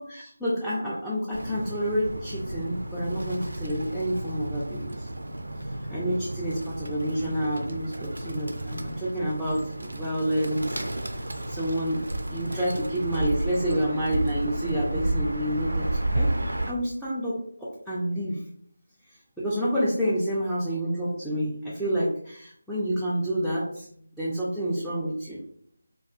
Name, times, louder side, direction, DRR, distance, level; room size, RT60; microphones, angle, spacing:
voice 1, 0.0-5.1 5.9-10.8 11.1-16.3 16.7-18.4 19.1-25.4, equal, ahead, -11 dB, 0.3 m, -29 dB
Bird, 1.3-16.7, right 1 dB, 70° right, 0.4 m, -32 dB
2.4 x 2.3 x 2.5 m, 0.62 s
figure-of-eight pair, 160°, 0 cm